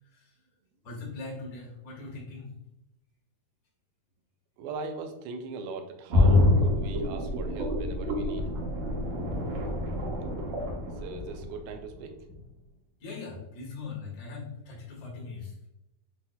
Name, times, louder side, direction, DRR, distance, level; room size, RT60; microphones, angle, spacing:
voice 1, 0.8-2.5 13.0-15.7, left 3 dB, 50° left, -4 dB, 1.7 m, -40 dB
voice 2, 4.6-8.5 11.0-12.2, right 4 dB, 80° right, 6 dB, 2.3 m, -39 dB
sound 1, 6.1-11.9 12.3-12.4, left 2 dB, 65° right, 1.9 m, -26 dB
7.8 x 2.8 x 2.2 m, 0.90 s
omnidirectional pair, 4.2 m